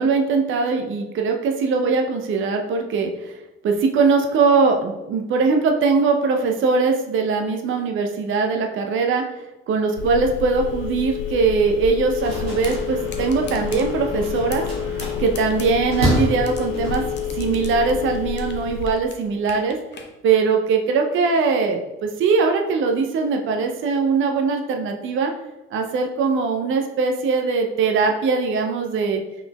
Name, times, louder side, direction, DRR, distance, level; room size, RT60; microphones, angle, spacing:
voice 1, 0.0-3.4 3.6-9.3 9.7-14.7 15.2-17.0 17.3-19.8 20.2-25.3 25.7-29.2, right 4 dB, 40° right, 4 dB, 0.6 m, -21 dB
Telephone, 10.0-18.9, left 8 dB, 65° left, 0.4 m, -29 dB
sound 1, 12.2-18.2, equal, 85° right, 1.2 m, -29 dB
sound 2, 12.6-12.8 13.1-13.8 14.3-14.7 15.0-16.6 16.9-18.6 18.9-20.1, left 5 dB, 35° left, 0.7 m, -39 dB
5.1 x 3.8 x 2.3 m, 1.0 s
figure-of-eight pair, 45°, 30 cm